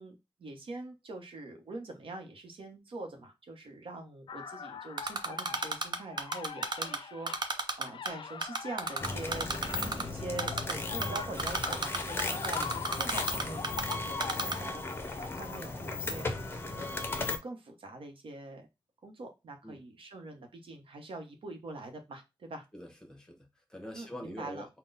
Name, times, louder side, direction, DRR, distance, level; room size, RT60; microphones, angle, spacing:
voice 1, 0.0-13.7 14.0-15.1 15.4-16.4 16.7-18.7 19.0-22.6 23.9-24.7, right 2 dB, 80° right, 0.9 m, -44 dB
sound 1, 4.3-16.6, left 7 dB, 65° left, 0.4 m, -44 dB
Typing, 5.0-7.0 7.3-8.1 8.4-10.0 10.4-10.7 11.0-13.9 14.2-14.6, right 4 dB, 55° right, 0.6 m, -31 dB
sound 2, 9.0-17.4, left 2 dB, 25° left, 0.6 m, -36 dB
voice 2, 22.7-24.7, left 1 dB, 5° left, 1.2 m, -45 dB
3.8 x 2.2 x 3.9 m
wide cardioid pair, 95°, 9 cm